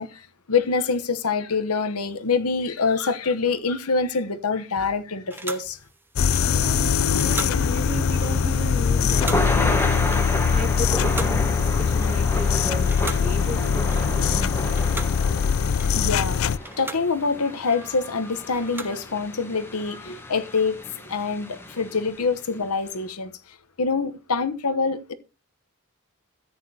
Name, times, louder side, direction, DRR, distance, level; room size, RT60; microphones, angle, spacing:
voice 1, 0.0-5.8 10.2-10.5 15.4-20.8 21.1-25.1, left 4 dB, 85° left, 1.0 m, -26 dB
sound 1, 5.3-12.5 12.8-14.4 14.7-19.1, right 2 dB, 10° right, 0.9 m, -40 dB
sound 2, 6.2-16.6, left 6 dB, 65° left, 0.4 m, -22 dB
voice 2, 6.4-10.2 10.5-15.2, right 1 dB, 35° right, 2.6 m, -35 dB
Thunder / Rain, 8.2-22.4, left 1 dB, 10° left, 1.3 m, -32 dB
14.0 x 9.0 x 2.9 m
head